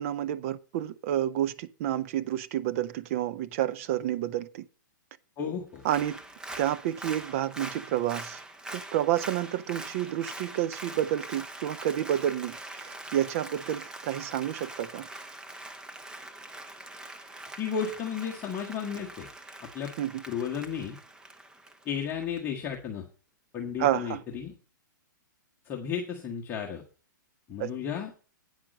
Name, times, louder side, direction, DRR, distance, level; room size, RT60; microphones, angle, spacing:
voice 1, 0.0-4.6 5.8-6.2 6.6-8.4 8.7-15.1 20.0-20.2 23.8-24.2 27.6-27.7, right 12 dB, 45° right, 0.6 m, -29 dB
voice 2, 5.4-5.8 17.6-19.3 19.6-19.9 20.3-21.0 21.8-23.1 23.5-24.5 25.6-26.8 27.5-28.1, left 7 dB, 20° left, 1.3 m, -33 dB
Applause, 5.8-22.4 22.7-22.8, right 2 dB, 5° right, 0.7 m, -43 dB
9.1 x 5.9 x 6.3 m
hypercardioid pair, 145°, 11 cm